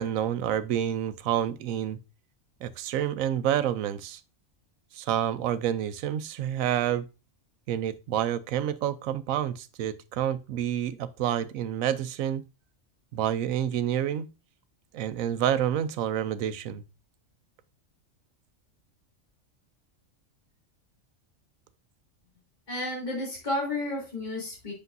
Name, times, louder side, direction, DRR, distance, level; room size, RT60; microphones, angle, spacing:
voice 1, 0.0-2.0 2.6-4.2 4.9-7.0 7.7-12.4 13.1-14.3 14.9-16.8, right 10 dB, 85° right, 1.0 m, -28 dB
voice 2, 22.7-24.7, left 1 dB, 35° left, 3.0 m, -32 dB
8.1 x 6.3 x 2.6 m
omnidirectional pair, 1.4 m